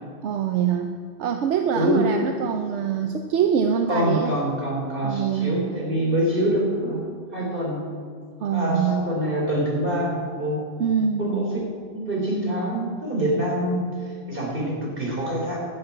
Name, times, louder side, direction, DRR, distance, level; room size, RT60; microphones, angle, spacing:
voice 1, 0.2-0.9 1.2-4.4 5.0-5.6 8.4-9.0 10.8-11.3, right 7 dB, 80° right, 5 dB, 1.0 m, -24 dB
voice 2, 1.7-2.1 3.9-7.0 7.3-7.9 8.5-10.6 11.2-11.5 11.9-15.6, right 1 dB, 50° right, -2 dB, 4.1 m, -25 dB
11.5 x 7.6 x 8.7 m, 2.1 s
omnidirectional pair, 1.2 m